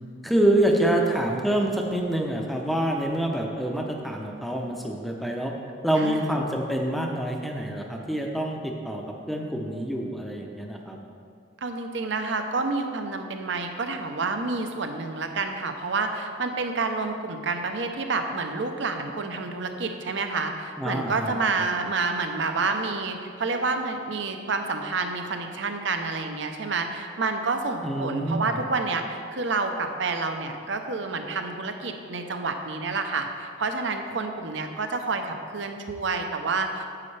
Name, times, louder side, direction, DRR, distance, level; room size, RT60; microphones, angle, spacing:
voice 1, 0.2-5.5 5.8-11.0 20.8-21.4 27.8-28.6, right 1 dB, ahead, 0 dB, 0.6 m, -26 dB
voice 2, 6.0-6.3 11.6-36.8, right 3 dB, 65° right, 6 dB, 0.7 m, -29 dB
9.6 x 7.8 x 3.3 m, 2.3 s
head